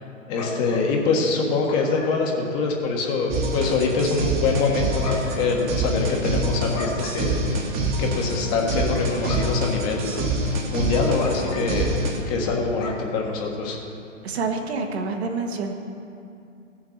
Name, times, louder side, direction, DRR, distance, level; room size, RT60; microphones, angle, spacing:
voice 1, 0.3-7.4 8.0-12.0 12.3-13.8, left 4 dB, 30° left, 0 dB, 1.5 m, -24 dB
sound 1, 3.3-12.2, right 1 dB, 25° right, 1.3 m, -26 dB
voice 2, 14.2-15.7, right 4 dB, 55° right, 3 dB, 1.4 m, -27 dB
15.5 x 7.0 x 4.4 m, 2.6 s
figure-of-eight pair, 120°, 38 cm